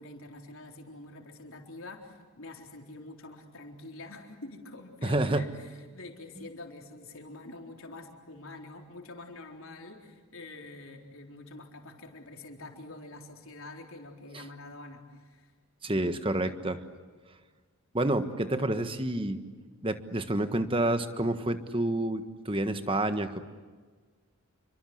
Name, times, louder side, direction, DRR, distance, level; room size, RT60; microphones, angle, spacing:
voice 1, 0.0-15.5, left 2 dB, 70° left, 2 dB, 4.1 m, -46 dB
voice 2, 5.0-5.5 14.3-14.4 15.8-16.8 17.9-19.4 19.8-23.4, right 1 dB, 25° right, 9 dB, 1.5 m, -29 dB
28.5 x 24.5 x 8.0 m, 1.5 s
head